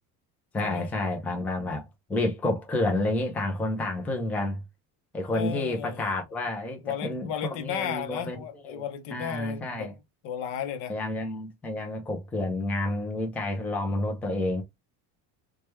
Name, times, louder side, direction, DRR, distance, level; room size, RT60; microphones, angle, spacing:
voice 1, 0.5-4.6 5.1-8.4 8.7-8.8 9.1-9.9 10.9-14.6, left 2 dB, 5° left, 0.4 m, -30 dB
voice 2, 5.3-6.1 6.8-11.3, left 9 dB, 65° left, 0.7 m, -35 dB
3.2 x 2.2 x 3.1 m
cardioid pair, 170°, 34 cm